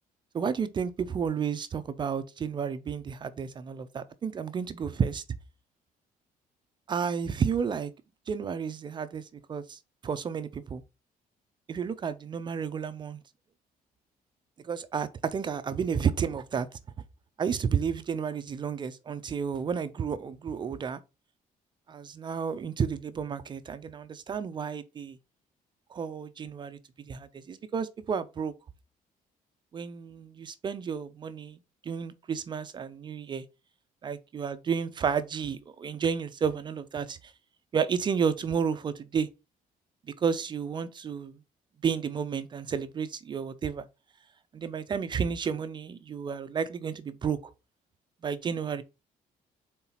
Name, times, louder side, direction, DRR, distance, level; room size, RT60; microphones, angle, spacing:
voice 1, 0.3-5.2 6.9-7.9 8.3-10.8 11.7-13.2 14.6-16.8 17.4-21.0 21.9-25.2 25.9-28.5 29.7-33.4 34.0-37.3 37.7-39.3 40.2-41.4 41.8-43.9 44.5-47.5 48.2-48.8, right 6 dB, 30° right, 0.4 m, -31 dB
4.4 x 3.9 x 5.6 m
cardioid pair, 160°, 15 cm